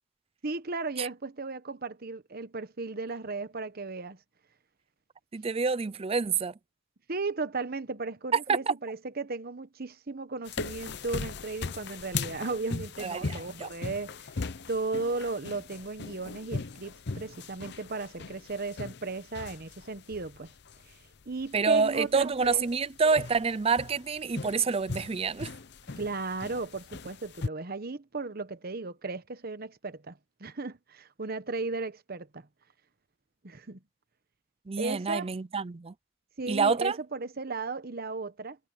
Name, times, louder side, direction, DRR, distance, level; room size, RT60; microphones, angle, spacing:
voice 1, 0.4-4.2 7.1-14.3 14.7-20.5 20.9-21.0 21.3-22.6 26.0-32.5 33.4-33.8 34.8-35.3 36.4-38.6, right 3 dB, 55° right, 1.1 m, -35 dB
voice 2, 5.3-6.5 8.3-8.7 13.0-13.7 21.5-25.5 34.7-35.9 36.5-37.0, right 5 dB, 30° right, 0.5 m, -27 dB
sound 1, 10.5-27.5, left 4 dB, 60° left, 0.8 m, -39 dB
head